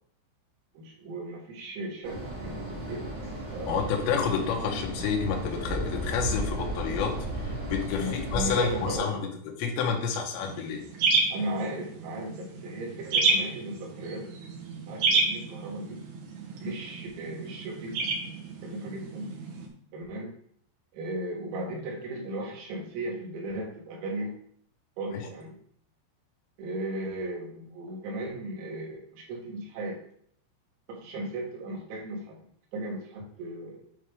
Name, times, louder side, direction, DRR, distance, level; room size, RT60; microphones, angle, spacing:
voice 1, 0.8-3.1 3.5-4.0 8.0-9.1 11.3-14.3 14.9-16.0 16.6-18.1 18.6-19.3 19.9-20.3 20.9-24.4 25.0-25.6 26.6-30.0 30.9-33.8, right 1 dB, 90° right, -2 dB, 4.3 m, -36 dB
sound 1, 2.0-9.0, right 1 dB, 45° right, 1.1 m, -35 dB
voice 2, 3.7-9.2 9.6-10.8 25.1-25.2, left 6 dB, 75° left, 1 dB, 3.0 m, -29 dB
sound 2, 10.4-19.7, right 3 dB, 70° right, 2.4 m, -30 dB
9.6 x 3.9 x 3.6 m, 0.62 s
omnidirectional pair, 5.8 m